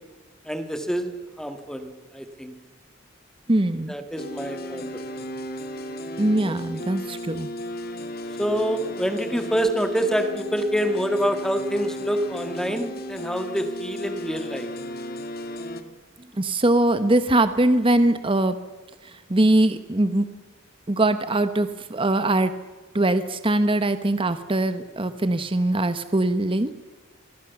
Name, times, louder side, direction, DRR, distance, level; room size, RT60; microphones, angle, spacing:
voice 1, 0.5-2.5 3.9-5.3 6.4-6.6 8.4-14.7, equal, 5° left, 7 dB, 1.8 m, -27 dB
voice 2, 3.5-3.9 6.2-7.5 16.4-18.6 19.3-20.3 20.9-22.5 22.9-26.7, right 1 dB, 25° right, 11 dB, 1.0 m, -21 dB
sound 1, 4.2-15.8, equal, 50° left, 2.3 m, -34 dB
24.5 x 23.0 x 7.1 m, 1.4 s
head